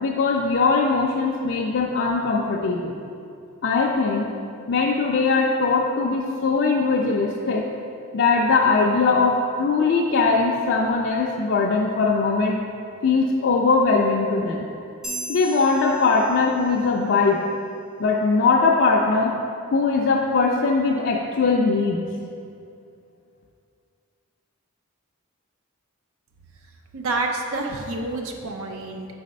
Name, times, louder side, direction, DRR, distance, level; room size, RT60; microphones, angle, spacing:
voice 1, 0.0-3.0 3.6-4.3 4.7-7.6 8.1-12.6 13.0-14.6 15.3-17.4 18.0-19.4 19.7-22.0, left 4 dB, 55° left, -3 dB, 0.4 m, -20 dB
sound 1, 15.0-16.9, right 1 dB, ahead, 0.6 m, -36 dB
voice 2, 26.9-29.1, right 2 dB, 75° right, 3 dB, 0.5 m, -28 dB
4.7 x 4.1 x 5.2 m, 2.5 s
head